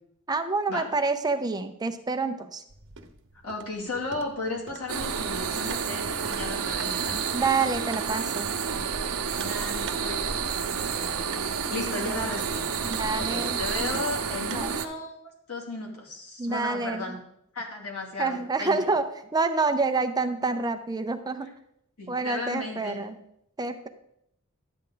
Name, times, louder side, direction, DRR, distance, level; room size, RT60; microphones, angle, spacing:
voice 1, 0.3-2.6 7.3-8.6 12.0-12.1 12.8-14.0 14.5-14.7 16.4-17.2 18.2-19.0 19.3-21.5 22.1-23.2 23.6-23.9, right 3 dB, 20° right, 8 dB, 0.6 m, -28 dB
sound 1, 2.7-14.6, right 4 dB, 60° right, 1.0 m, -46 dB
voice 2, 3.4-7.2 9.4-10.3 10.7-11.4 11.7-12.7 13.2-15.1 15.5-17.1 17.5-18.8 22.0-23.0, left 2 dB, 85° left, -1 dB, 2.6 m, -35 dB
sound 2, 4.9-14.9, right 6 dB, 80° right, 0.8 m, -30 dB
11.5 x 8.7 x 3.9 m, 0.75 s
head